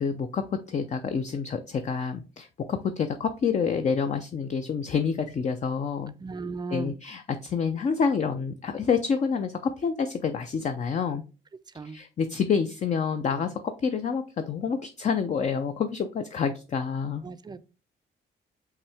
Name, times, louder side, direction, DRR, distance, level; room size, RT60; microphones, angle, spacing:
voice 1, 0.0-6.1 6.7-11.2 11.8-17.2, left 6 dB, 35° left, 0.4 m, -28 dB
voice 2, 6.2-6.9 11.8-12.0 17.2-17.6, right 4 dB, 20° right, 0.4 m, -36 dB
5.7 x 2.7 x 3.3 m
cardioid pair, 90°, 20 cm